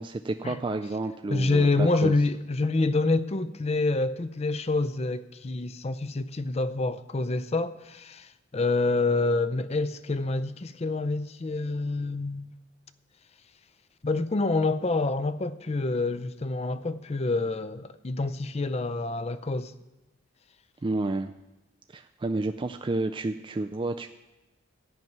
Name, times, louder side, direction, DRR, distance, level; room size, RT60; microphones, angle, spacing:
voice 1, 0.0-2.2 20.8-21.3 21.9-24.1, right 2 dB, 25° right, 0.3 m, -30 dB
voice 2, 1.3-12.5 14.0-19.7, left 3 dB, 30° left, 0.5 m, -27 dB
14.0 x 5.9 x 9.3 m
head